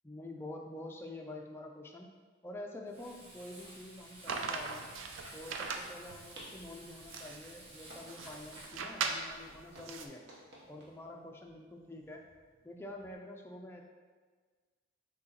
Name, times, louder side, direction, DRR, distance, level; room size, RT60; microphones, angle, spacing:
voice 1, 0.0-2.1 2.4-4.9 5.3-10.2 10.7-12.2 12.6-13.8, left 1 dB, 10° left, 1 dB, 0.3 m, -47 dB
Frying (food), 2.9-8.8, right 1 dB, 30° right, 0.9 m, -53 dB
sound 1, 4.3-10.1, right 4 dB, 70° right, 0.4 m, -40 dB
sound 2, 5.6-13.1, right 1 dB, 55° right, 1.0 m, -58 dB
6.1 x 2.8 x 2.9 m, 1.5 s
head